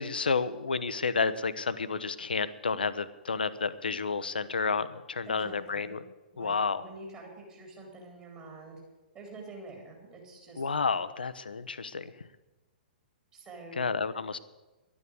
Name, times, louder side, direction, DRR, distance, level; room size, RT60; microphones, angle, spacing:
voice 1, 0.0-6.0 6.4-6.8 10.6-12.1 13.8-14.4, left 5 dB, 70° left, 13 dB, 0.9 m, -30 dB
voice 2, 5.3-6.0 6.3-8.8 9.1-10.9 13.3-13.9, right 2 dB, 25° right, 0 dB, 3.7 m, -47 dB
12.0 x 9.7 x 8.4 m, 1.1 s
figure-of-eight pair, 115°, 5 cm